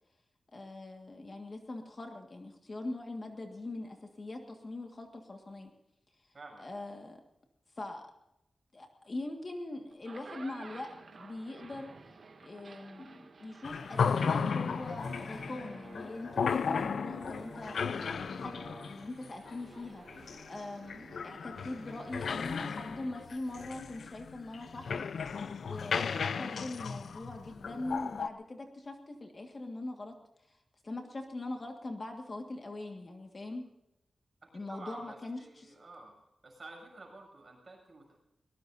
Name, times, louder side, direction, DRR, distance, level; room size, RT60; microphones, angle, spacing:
voice 1, 0.5-5.7 6.2-6.3 6.6-7.2 7.7-8.0 8.7-11.9 12.4-25.4 25.6-30.2 30.5-30.6 30.8-33.7 34.5-35.7, left 2 dB, 35° left, 3 dB, 1.7 m, -42 dB
voice 2, 6.3-6.7 34.5-36.2 36.4-38.2, right 2 dB, 35° right, 0 dB, 7.5 m, -50 dB
sound 1, 9.9-23.3, right 4 dB, 60° right, 2.2 m, -54 dB
sound 2, 13.6-28.3, left 6 dB, 85° left, 0.6 m, -35 dB
Brass instrument, 14.9-19.0, equal, 20° right, 2.8 m, -50 dB
23.0 x 20.0 x 2.7 m, 0.86 s
wide cardioid pair, 165°, 0 cm